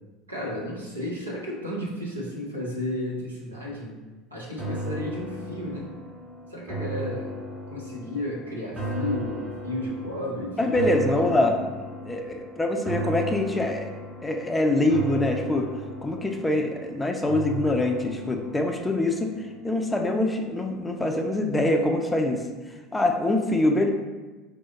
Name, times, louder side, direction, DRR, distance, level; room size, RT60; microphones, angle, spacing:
voice 1, 0.3-4.0 4.3-5.9 6.5-7.3 7.7-11.3, left 1 dB, 80° right, -4 dB, 0.8 m, -33 dB
sound 1, 4.6-19.9 20.3-20.4, equal, 30° right, 1.0 m, -36 dB
voice 2, 10.6-11.5 12.1-13.9 14.2-15.7 16.0-19.3 19.6-22.4 22.9-23.9, left 1 dB, 10° left, 3 dB, 0.4 m, -24 dB
4.8 x 2.0 x 3.7 m, 1.2 s
figure-of-eight pair, 70°, 0 cm